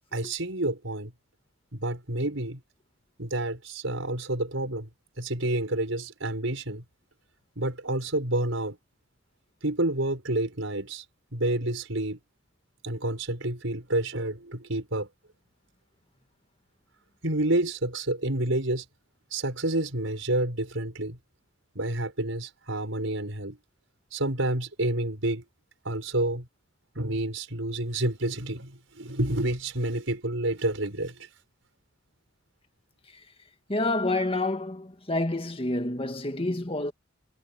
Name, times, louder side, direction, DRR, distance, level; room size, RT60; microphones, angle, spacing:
voice 1, 0.1-1.1 1.7-2.6 3.2-4.9 5.2-6.8 7.6-8.8 9.6-11.0 11.3-12.2 12.8-15.1 17.2-18.8 19.3-21.2 21.7-23.6 24.1-25.4 25.8-26.5 26.9-31.3, right 1 dB, 75° right, 6.1 m, -29 dB
voice 2, 33.7-36.9, left 2 dB, 30° left, 1.9 m, -28 dB
head